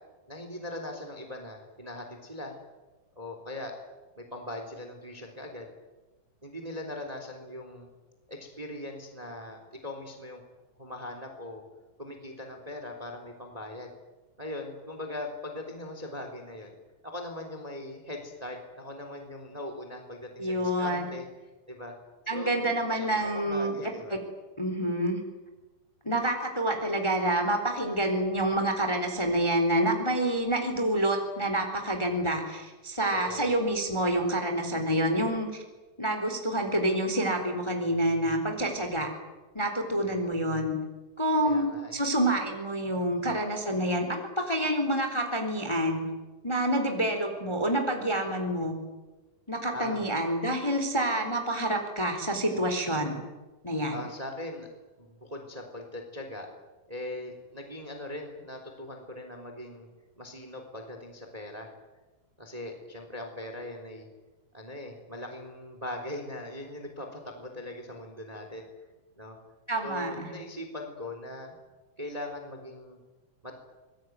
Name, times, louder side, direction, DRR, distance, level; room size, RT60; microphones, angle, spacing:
voice 1, 0.3-2.5 3.1-3.7 4.2-5.7 6.4-7.9 8.3-10.4 10.8-11.6 12.0-13.9 14.4-16.7 17.0-21.3 21.7-21.9 22.3-24.2 33.1-33.5 41.4-42.0 43.2-43.5 49.7-50.0 53.9-54.7 55.0-56.5 56.9-59.9 60.2-61.7 62.4-64.1 64.5-68.7 69.2-69.4 69.8-71.5 72.0-73.0 73.4-73.6, left 1 dB, 10° right, 4 dB, 3.2 m, -40 dB
voice 2, 20.4-21.1 22.3-23.7 24.1-24.2 24.6-25.2 26.0-35.6 36.0-39.1 39.5-40.7 41.2-46.0 46.4-48.7 49.5-53.2 53.6-54.0 69.7-70.3, right 1 dB, 10° left, 5 dB, 3.2 m, -28 dB
26.0 x 21.5 x 9.5 m, 1.2 s
omnidirectional pair, 4.3 m